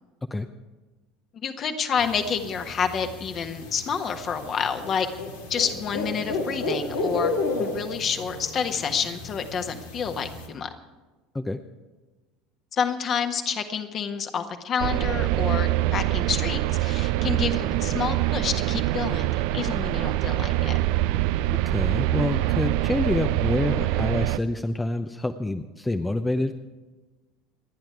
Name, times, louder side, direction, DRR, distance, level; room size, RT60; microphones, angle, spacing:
voice 1, 1.3-5.1 5.5-7.3 7.6-10.7 12.7-20.7, left 6 dB, 40° left, 6 dB, 1.6 m, -29 dB
sound 1, 2.0-10.5, left 2 dB, 80° left, 2.1 m, -33 dB
sound 2, 14.8-24.4, right 16 dB, 60° right, 0.5 m, -24 dB
voice 2, 21.7-26.5, left 2 dB, 10° left, 8 dB, 0.8 m, -27 dB
28.0 x 10.5 x 4.7 m, 1.2 s
figure-of-eight pair, 70°, 0 cm